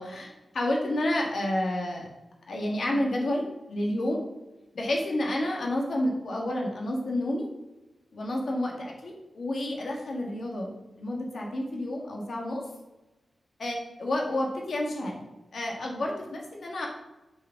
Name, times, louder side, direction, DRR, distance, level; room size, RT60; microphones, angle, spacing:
voice 1, 0.0-2.1 2.5-4.2 4.7-7.5 8.1-10.7 11.0-12.6 13.6-15.2 15.5-16.9, left 1 dB, 55° left, 0 dB, 1.8 m, -30 dB
7.1 x 5.4 x 5.9 m, 1.1 s
wide cardioid pair, 160°, 0 cm